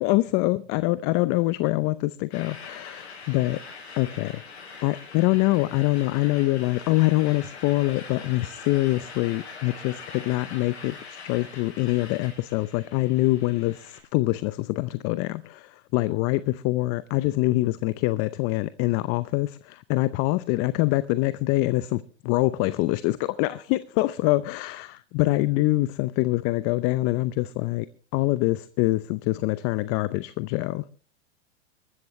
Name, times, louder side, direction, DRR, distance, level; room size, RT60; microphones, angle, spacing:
voice 1, 0.0-3.6 4.0-4.4 4.8-27.9 28.1-30.8, left 19 dB, 40° left, 0.7 m, -25 dB
sound 1, 2.3-14.0, left 4 dB, 75° left, 7.6 m, -43 dB
22.0 x 13.0 x 3.2 m
hypercardioid pair, 105°, 34 cm